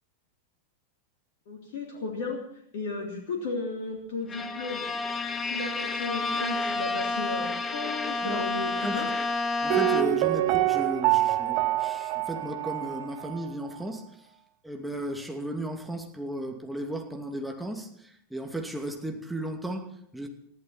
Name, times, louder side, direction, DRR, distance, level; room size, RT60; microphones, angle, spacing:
voice 1, 1.5-2.4 2.7-4.9 5.4-9.1, left 3 dB, 50° left, 1 dB, 3.3 m, -34 dB
Bowed string instrument, 4.3-10.4, left 3 dB, 20° left, 1.5 m, -30 dB
Bowed string instrument 2, 8.1-13.5, left 1 dB, 75° left, 5.0 m, -49 dB
voice 2, 8.8-9.1 9.6-14.3 14.6-20.3, right 1 dB, ahead, 3 dB, 2.6 m, -35 dB
Piano, 9.7-13.5 13.7-13.8, right 17 dB, 45° right, 0.6 m, -26 dB
21.0 x 14.5 x 4.4 m, 0.67 s
figure-of-eight pair, 90°, 0 cm